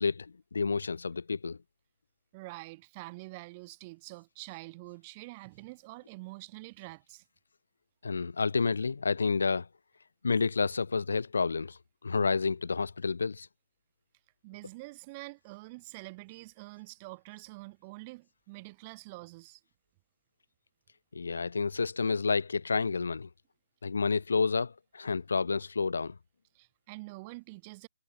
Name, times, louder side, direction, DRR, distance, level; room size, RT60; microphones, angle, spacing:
voice 1, 0.0-1.6 8.0-9.7 10.2-13.5 21.1-23.3 23.8-26.2, left 4 dB, 75° left, 3.1 m, -30 dB
voice 2, 2.3-7.2 14.4-19.6 26.5-27.9, right 24 dB, 30° right, 4.3 m, -46 dB
figure-of-eight pair, 140°, 0 cm